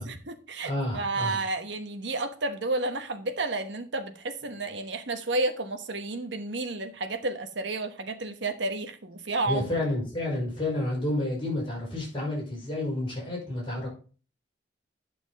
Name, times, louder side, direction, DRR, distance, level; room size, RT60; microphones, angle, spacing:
voice 1, 0.0-9.6, right 2 dB, 75° right, 1.2 m, -31 dB
voice 2, 0.6-1.4 9.4-13.9, left 1 dB, 30° left, 5.2 m, -30 dB
9.4 x 6.1 x 4.1 m
head